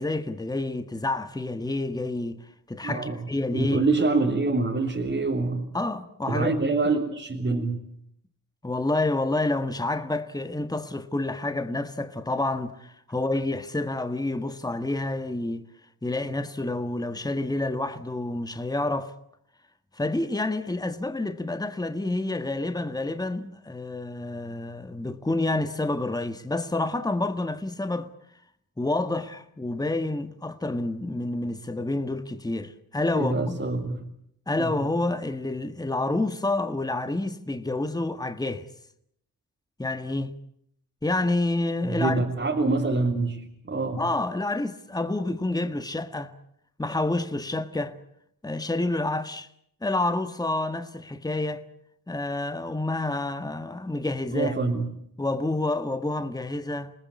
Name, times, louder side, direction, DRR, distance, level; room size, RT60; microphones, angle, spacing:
voice 1, 0.0-3.8 5.7-6.9 8.6-15.6 16.0-19.1 19.9-28.1 28.8-33.6 34.5-38.7 39.8-40.3 41.0-42.2 44.0-46.3 46.8-47.9 48.4-49.5 49.8-51.6 52.1-54.5 55.2-56.9, left 2 dB, 10° left, 1.7 m, -28 dB
voice 2, 2.8-3.2 3.5-5.6 6.3-7.9 33.1-34.0 34.6-34.7 41.8-44.0 54.3-55.0, right 3 dB, 35° right, 3.4 m, -26 dB
28.0 x 19.5 x 8.4 m
cardioid pair, 85°, 34 cm